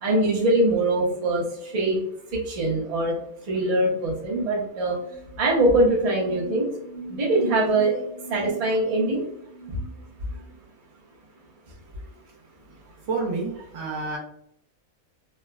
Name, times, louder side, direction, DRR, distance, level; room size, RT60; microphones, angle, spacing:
voice 1, 0.0-2.0 2.3-3.2 3.5-5.0 5.4-6.7 7.1-8.0 8.3-9.2, right 2 dB, 40° right, -4 dB, 0.5 m, -22 dB
sound 1, 4.8-10.5, right 1 dB, 45° left, 0.9 m, -42 dB
voice 2, 13.1-14.2, right 3 dB, 65° right, -1 dB, 0.9 m, -29 dB
3.3 x 2.0 x 2.3 m, 0.75 s
omnidirectional pair, 1.6 m